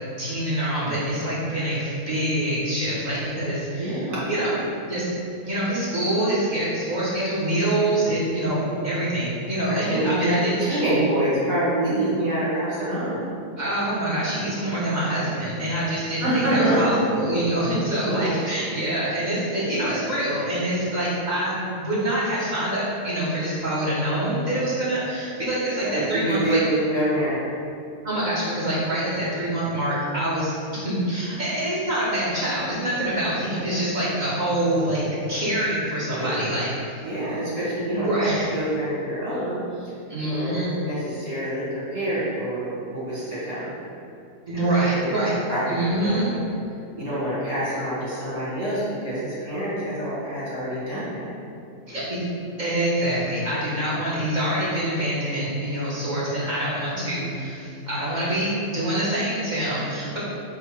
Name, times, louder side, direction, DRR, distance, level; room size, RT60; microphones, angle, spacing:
voice 1, 0.2-4.5 4.9-5.0 5.4-10.8 13.6-26.6 28.0-35.0 35.3-37.1 37.9-38.5 40.1-40.7 44.5-45.3 45.7-46.3 51.9-52.2 52.6-60.2, right 1 dB, 35° right, -9 dB, 1.0 m, -25 dB
voice 2, 3.8-4.2 9.7-13.2 16.2-16.9 18.1-18.2 25.8-27.4 36.0-36.3 37.0-39.9 40.2-43.7 44.5-45.1 45.5-46.4 47.0-51.3 57.0-57.1, right 1 dB, 70° right, -9 dB, 1.9 m, -26 dB
3.9 x 2.4 x 4.5 m, 2.5 s
omnidirectional pair, 1.6 m